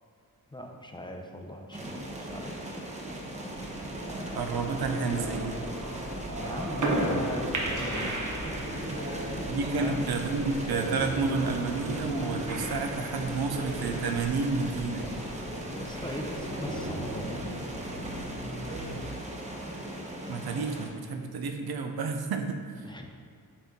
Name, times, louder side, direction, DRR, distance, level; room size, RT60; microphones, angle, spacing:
voice 1, 0.5-2.5 6.3-8.6 9.0-10.1 15.7-17.6 22.8-23.1, left 1 dB, 15° left, 2 dB, 0.5 m, -40 dB
sound 1, 1.7-20.9, right 1 dB, 20° right, 0.8 m, -38 dB
sound 2, 3.5-19.0, right 1 dB, 55° right, 1.0 m, -36 dB
voice 2, 4.3-5.6 9.4-15.1 20.3-22.9, right 4 dB, 85° right, 5 dB, 0.7 m, -30 dB
sound 3, 7.1-16.5, equal, 40° right, 1.5 m, -50 dB
9.9 x 4.1 x 3.6 m, 2.1 s
wide cardioid pair, 165°, 36 cm